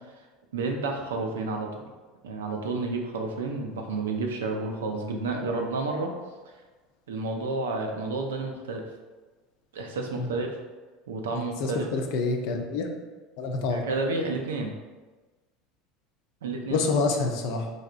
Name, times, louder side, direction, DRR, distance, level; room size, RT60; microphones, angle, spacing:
voice 1, 0.5-1.9 2.2-6.1 7.1-8.8 9.7-10.6 11.1-11.9 13.7-14.7 16.4-16.8, right 3 dB, 80° right, 2 dB, 0.4 m, -30 dB
voice 2, 11.3-12.9 13.4-13.8 16.7-17.7, left 3 dB, 65° left, 3 dB, 0.4 m, -27 dB
3.2 x 2.7 x 2.4 m, 1.3 s
hypercardioid pair, 75°, 0 cm